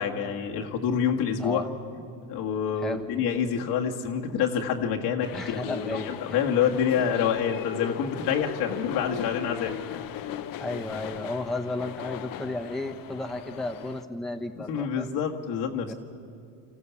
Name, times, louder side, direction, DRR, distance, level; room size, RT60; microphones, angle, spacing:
voice 1, 0.0-1.7 2.3-10.2 14.7-15.9, left 7 dB, 75° left, 1 dB, 1.8 m, -27 dB
sound 1, 5.2-14.0, left 11 dB, 55° left, 0.9 m, -38 dB
voice 2, 5.3-6.4 10.6-15.1 15.9-16.0, left 2 dB, ahead, 3 dB, 1.2 m, -33 dB
26.5 x 14.5 x 7.1 m, 2.4 s
supercardioid pair, 95°, 39 cm